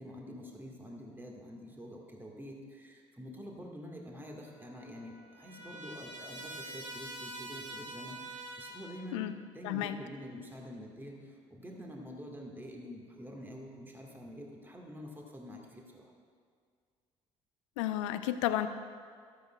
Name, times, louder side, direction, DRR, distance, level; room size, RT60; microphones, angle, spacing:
voice 1, 0.0-9.3 9.5-16.0, equal, 15° right, 0 dB, 1.7 m, -47 dB
Trumpet, 4.4-9.2, right 1 dB, 85° right, 1.0 m, -46 dB
voice 2, 9.6-9.9 17.8-18.7, left 13 dB, 75° left, 11 dB, 0.5 m, -32 dB
15.0 x 12.0 x 2.3 m, 2.1 s
figure-of-eight pair, 50°, 16 cm